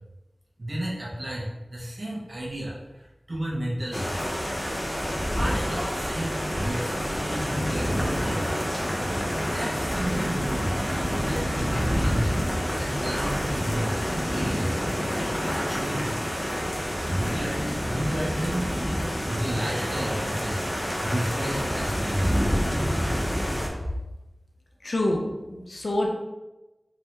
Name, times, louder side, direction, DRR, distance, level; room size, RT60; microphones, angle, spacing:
voice 1, 0.6-4.5 5.3-8.6 9.4-10.7 11.1-12.4 12.8-16.4 17.1-18.7 19.0-20.6 21.0-22.4, equal, 65° right, -6 dB, 1.2 m, -32 dB
sound 1, 3.9-23.7, equal, 20° left, 0.9 m, -28 dB
voice 2, 24.8-26.1, left 1 dB, 65° left, -1 dB, 0.7 m, -27 dB
3.9 x 2.8 x 3.2 m, 1.0 s
wide cardioid pair, 45°, 0 cm